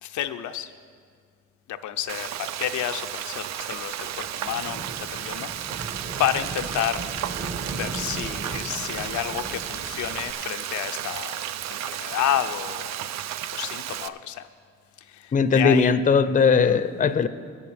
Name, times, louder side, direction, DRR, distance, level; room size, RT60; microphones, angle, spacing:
voice 1, 0.0-0.7 1.7-5.9 6.2-7.1 7.7-11.4 11.7-13.1 13.5-14.5 15.0-15.9, left 10 dB, 75° left, 8 dB, 0.5 m, -30 dB
Frying (food), 2.1-14.1, right 11 dB, 65° right, 0.5 m, -33 dB
Thunderstorm / Rain, 2.7-10.3, right 3 dB, 30° right, 1.0 m, -38 dB
voice 2, 15.3-17.3, left 5 dB, 25° left, 13 dB, 0.5 m, -19 dB
23.0 x 8.4 x 3.4 m, 2.1 s
cardioid pair, 90°, 30 cm